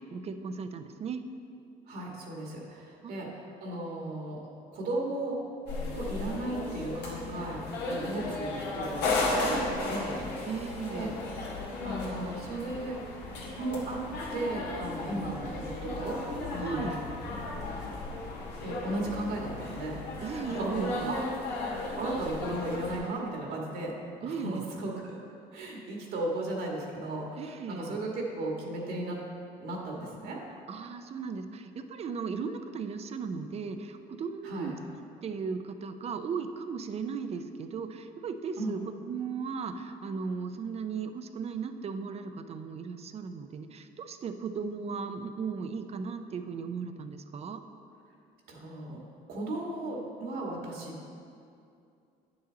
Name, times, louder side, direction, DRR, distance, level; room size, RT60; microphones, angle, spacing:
voice 1, 0.1-1.2 3.0-3.1 10.5-11.2 16.6-17.0 20.2-21.1 24.2-24.6 27.4-28.0 30.7-34.8 35.2-47.6, right 5 dB, 40° right, 9 dB, 0.5 m, -36 dB
voice 2, 1.9-4.4 4.7-5.4 5.9-10.1 10.9-11.1 11.8-13.0 13.6-14.0 14.3-16.2 16.5-16.9 18.6-21.3 22.0-23.9 24.2-25.2 25.5-29.2 29.6-30.4 34.4-34.7 38.6-38.8 48.5-49.0 49.3-51.0, right 2 dB, 70° right, -1 dB, 1.8 m, -35 dB
sound 1, 5.7-23.0, left 2 dB, 90° left, 1.9 m, -35 dB
9.3 x 6.9 x 3.9 m, 2.5 s
cardioid pair, 110°, 17 cm